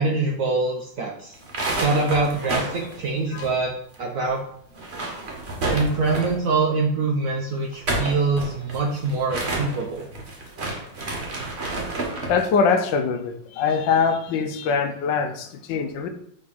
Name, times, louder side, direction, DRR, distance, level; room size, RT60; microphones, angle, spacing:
voice 1, 0.0-1.3 1.8-3.7 4.0-4.4 5.7-10.0, right 3 dB, 65° right, 1 dB, 0.8 m, -24 dB
sound 1, 1.3-4.0 4.2-4.3 4.7-6.5 7.6-12.4, right 2 dB, 40° right, 1.2 m, -30 dB
voice 2, 12.3-16.1, left 5 dB, 75° left, 8 dB, 1.3 m, -23 dB
5.2 x 3.4 x 5.4 m, 0.68 s
omnidirectional pair, 2.1 m